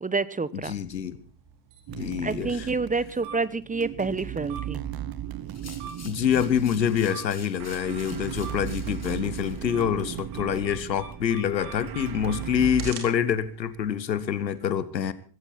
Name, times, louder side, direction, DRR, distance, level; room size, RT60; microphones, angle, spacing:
voice 1, 0.0-0.7 2.2-4.8, right 4 dB, 15° right, 18 dB, 1.1 m, -28 dB
voice 2, 0.5-1.2 1.9-2.7 6.0-15.1, left 8 dB, 90° left, 16 dB, 1.2 m, -26 dB
sound 1, 0.6-14.5, right 6 dB, 65° right, 4.6 m, -47 dB
sound 2, 1.9-12.9, right 11 dB, 45° right, 1.6 m, -37 dB
sound 3, 5.5-9.6, left 5 dB, 30° left, 4.1 m, -48 dB
19.0 x 16.5 x 4.2 m, 0.39 s
figure-of-eight pair, 55°, 50 cm